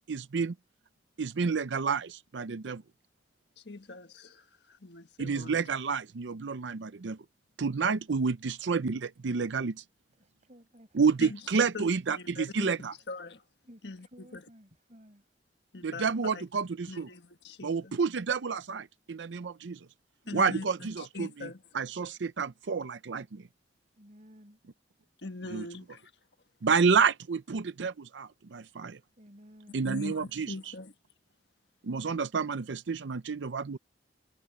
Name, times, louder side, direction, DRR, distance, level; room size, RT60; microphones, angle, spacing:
voice 1, 0.1-0.5 1.2-2.8 5.2-7.2 7.6-9.8 10.9-12.9 15.8-17.1 17.6-19.9 20.3-21.5 21.7-23.5 25.5-25.7 26.6-29.0 29.7-30.5 31.8-33.8, right 5 dB, 80° right, 0.6 m, -29 dB
voice 2, 3.6-5.6 11.2-12.7 13.1-13.4 13.8-14.4 15.7-16.4 16.9-17.9 20.3-21.6 25.2-26.1 29.8-30.9, left 2 dB, 65° left, 1.5 m, -42 dB
voice 3, 10.1-11.0 13.7-15.3 20.2-20.9 24.0-24.6 29.2-29.9, equal, 40° right, 5.5 m, -56 dB
head